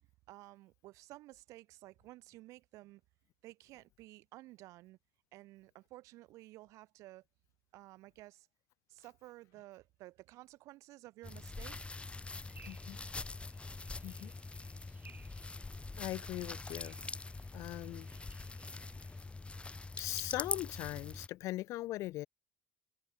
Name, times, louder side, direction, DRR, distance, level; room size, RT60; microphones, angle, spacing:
voice 1, 0.3-3.0 3.4-5.0 5.3-7.2 7.7-8.5 8.9-11.9 12.6-12.7, right 18 dB, 75° right, 1.6 m, -54 dB
sound 1, 11.2-21.3, left 3 dB, 20° left, 1.7 m, -44 dB
sound 2, 12.5-19.3, right 5 dB, 35° right, 3.3 m, -63 dB
voice 2, 12.6-13.0 14.0-14.3 16.0-17.0 17.5-18.1 20.0-22.3, left 17 dB, 75° left, 0.4 m, -40 dB
supercardioid pair, 70°, 5 cm